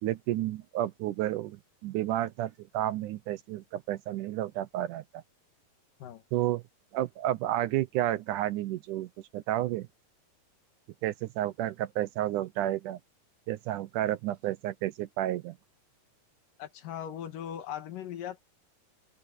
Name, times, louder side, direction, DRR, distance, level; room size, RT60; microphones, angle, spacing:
voice 1, 0.0-5.2 6.3-6.6 6.9-9.9 11.0-13.0 13.5-15.6, right 13 dB, 75° right, 1.9 m, -31 dB
voice 2, 16.6-18.4, left 10 dB, 65° left, 3.1 m, -39 dB
open air
omnidirectional pair, 4.4 m